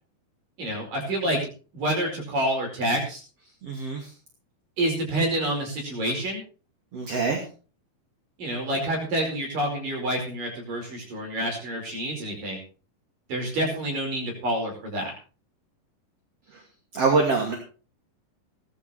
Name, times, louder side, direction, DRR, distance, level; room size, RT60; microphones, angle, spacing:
voice 1, 0.6-1.4 1.7-3.2 4.8-6.4 8.4-12.6 13.3-15.1, right 1 dB, 70° right, 1 dB, 6.6 m, -28 dB
voice 2, 3.6-4.1 6.9-7.4 16.9-17.5, right 4 dB, 45° right, 1 dB, 3.5 m, -24 dB
18.5 x 12.0 x 4.4 m, 0.38 s
omnidirectional pair, 3.9 m